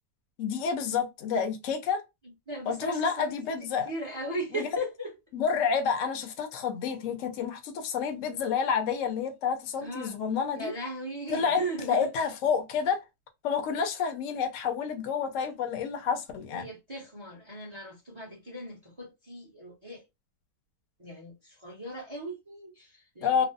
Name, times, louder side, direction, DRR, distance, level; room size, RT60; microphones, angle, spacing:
voice 1, 0.4-2.0 2.7-3.9 4.6-4.7 5.3-10.7 11.3-13.0 13.4-16.7 23.2-23.5, left 6 dB, 60° left, 0.9 m, -29 dB
voice 2, 2.5-5.1 9.8-10.2 10.6-12.1 16.5-20.0 21.0-23.5, right 1 dB, 25° right, 0.7 m, -38 dB
3.1 x 2.0 x 2.6 m
omnidirectional pair, 1.8 m